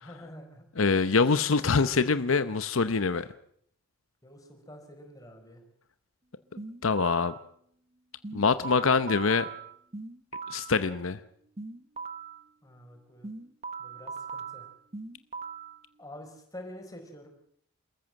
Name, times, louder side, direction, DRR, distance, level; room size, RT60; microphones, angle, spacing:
voice 1, 0.0-1.0 4.2-5.6 12.6-13.3 13.8-14.7 16.0-17.3, left 1 dB, 15° left, 3 dB, 4.6 m, -47 dB
voice 2, 0.8-3.3 6.8-7.3 8.3-9.5 10.5-11.2, left 4 dB, 80° left, 12 dB, 0.8 m, -24 dB
sound 1, 6.6-7.4 8.2-10.8 11.6-12.4 13.2-15.8, right 5 dB, 30° right, 1.1 m, -40 dB
28.0 x 14.5 x 7.6 m, 0.67 s
head